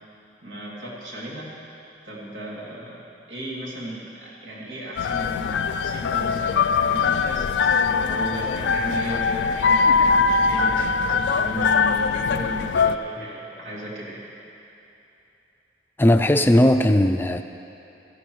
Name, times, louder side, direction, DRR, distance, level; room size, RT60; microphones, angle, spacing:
voice 1, 0.4-1.5 2.0-14.2, right 1 dB, 85° right, -6 dB, 2.8 m, -35 dB
sound 1, 5.0-13.0, left 5 dB, 80° left, 0.4 m, -22 dB
voice 2, 16.0-17.4, left 1 dB, 10° left, 7 dB, 0.4 m, -17 dB
16.5 x 13.5 x 3.2 m, 2.8 s
head